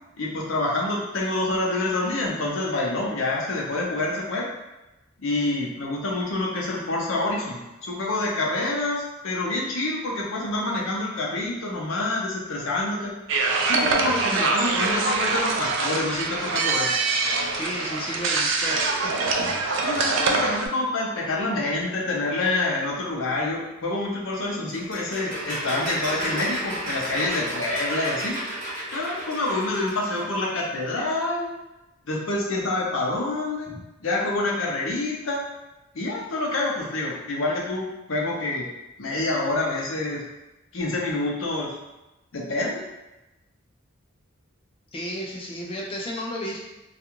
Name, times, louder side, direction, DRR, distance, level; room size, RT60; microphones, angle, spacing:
voice 1, 0.2-4.5 5.2-13.1 13.7-16.9 19.8-28.4 28.9-31.5 32.1-33.7 34.0-35.5 35.9-38.7 39.0-40.2 40.7-41.7 42.3-42.8, left 2 dB, 75° left, -2 dB, 0.6 m, -27 dB
sound 1, 13.3-20.7, right 3 dB, 60° right, 0.3 m, -24 dB
voice 2, 17.5-18.9 20.2-20.4 33.7-33.8 44.9-46.6, equal, 25° left, -1 dB, 0.4 m, -33 dB
sound 2, 24.7-30.4, right 1 dB, 40° right, 0.9 m, -32 dB
2.4 x 2.3 x 2.9 m, 0.99 s
head